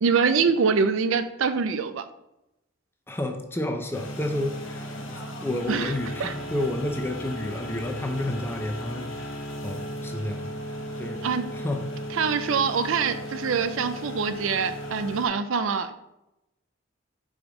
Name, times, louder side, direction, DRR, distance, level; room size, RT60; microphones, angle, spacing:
voice 1, 0.0-2.0 5.7-5.9 6.2-6.3 11.2-11.4 12.1-15.9, right 5 dB, 75° right, 10 dB, 0.4 m, -24 dB
voice 2, 3.1-10.5 11.0-11.2 11.5-11.9, left 1 dB, 10° left, 4 dB, 0.5 m, -30 dB
sound 1, 3.9-15.3, equal, 80° left, 1.0 m, -36 dB
5.2 x 4.9 x 3.9 m, 0.89 s
head